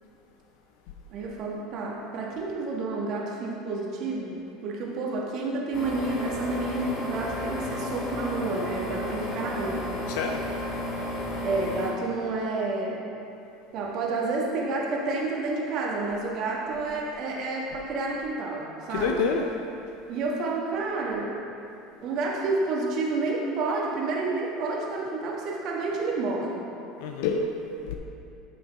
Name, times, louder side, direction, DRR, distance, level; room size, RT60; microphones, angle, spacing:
voice 1, 1.1-9.9 11.4-13.0 13.7-19.2 20.1-21.3 22.0-26.6, right 3 dB, 55° right, -2 dB, 1.4 m, -30 dB
sound 1, 5.7-11.9, left 1 dB, 55° left, 2.0 m, -33 dB
voice 2, 10.1-10.4 18.9-19.4 27.0-27.9, left 4 dB, 75° left, 3 dB, 0.5 m, -27 dB
9.7 x 6.2 x 3.5 m, 2.7 s
supercardioid pair, 105°, 0 cm